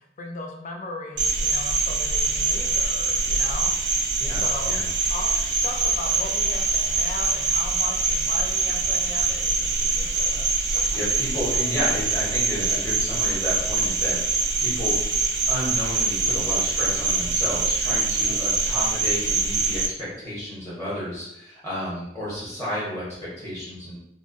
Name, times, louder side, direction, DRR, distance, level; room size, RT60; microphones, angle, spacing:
voice 1, 0.0-4.0 4.2-10.8, left 2 dB, 45° left, 2 dB, 0.3 m, -37 dB
Cricket, 1.2-19.9, right 3 dB, 85° right, 0.4 m, -24 dB
voice 2, 4.2-4.8 10.5-15.0 15.5-24.0, equal, 15° left, -8 dB, 0.7 m, -32 dB
2.4 x 2.1 x 2.5 m, 0.80 s
head